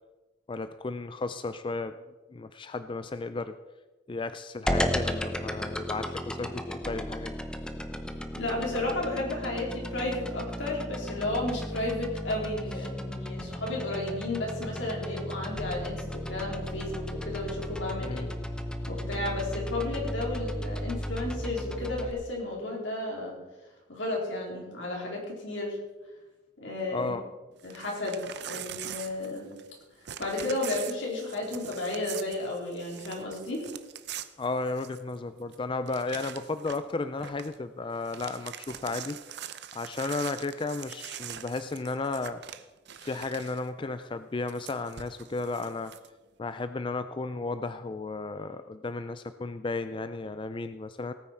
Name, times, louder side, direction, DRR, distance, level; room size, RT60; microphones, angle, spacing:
voice 1, 0.5-2.0 2.3-3.5 4.1-7.4 18.0-18.3 26.9-27.3 34.4-39.2 39.7-42.4 43.0-45.9 46.4-51.1, left 3 dB, 25° left, 11 dB, 0.4 m, -34 dB
sound 1, 4.7-22.1, equal, 5° left, 0.8 m, -35 dB
voice 2, 8.4-18.2 18.8-23.3 23.9-25.8 26.6-27.1 27.6-29.5 30.2-33.7, left 2 dB, 80° left, -2 dB, 4.3 m, -33 dB
Crumpling crinkling / Tearing, 27.6-29.8 30.0-35.2 35.5-35.6 35.9-36.9 37.2-37.6 37.9-43.7 44.5-46.1, right 10 dB, 60° right, 0.7 m, -43 dB
17.5 x 9.4 x 4.6 m, 1.2 s
head